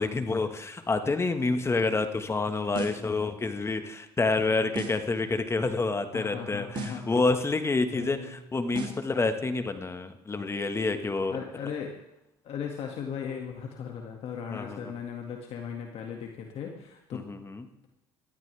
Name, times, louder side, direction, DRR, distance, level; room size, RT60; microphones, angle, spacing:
voice 1, 0.0-11.4 14.5-14.9 17.1-17.6, left 3 dB, 25° left, 8 dB, 1.5 m, -28 dB
sound 1, 2.7-3.1 4.7-5.1 6.7-7.1 8.7-9.1, right 5 dB, 45° right, 3.1 m, -37 dB
voice 2, 6.1-7.1 7.9-8.3 11.3-12.0 12.4-17.2, left 7 dB, 60° left, 1 dB, 2.1 m, -37 dB
18.5 x 13.5 x 3.5 m, 0.83 s
supercardioid pair, 85°, 11 cm